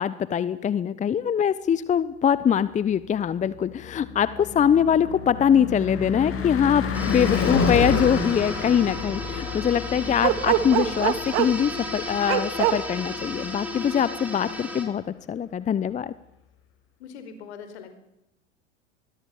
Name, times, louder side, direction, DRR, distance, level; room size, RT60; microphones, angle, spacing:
voice 1, 0.0-16.1, left 8 dB, 20° left, 17 dB, 0.9 m, -23 dB
Car passing by / Truck / Engine, 3.4-13.6, left 5 dB, 35° left, 6.1 m, -30 dB
sound 1, 6.9-14.8, left 1 dB, 5° right, 6.3 m, -34 dB
Bark, 10.2-11.6 12.3-12.8, right 15 dB, 50° right, 2.4 m, -22 dB
voice 2, 17.0-17.9, left 6 dB, 60° left, 9 dB, 5.0 m, -41 dB
25.0 x 21.5 x 7.3 m, 0.86 s
figure-of-eight pair, 85°, 36 cm